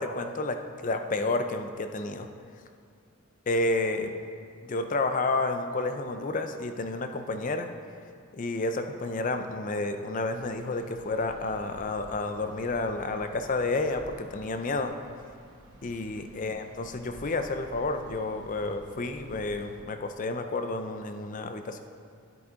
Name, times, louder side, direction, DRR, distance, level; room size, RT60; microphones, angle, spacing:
voice 1, 0.0-2.3 3.5-4.1 4.6-7.7 8.3-14.9 15.8-21.8, left 2 dB, 35° left, 7 dB, 0.4 m, -30 dB
sound 1, 10.3-19.8, right 1 dB, 90° right, 1.2 m, -52 dB
10.0 x 8.0 x 3.6 m, 2.3 s
head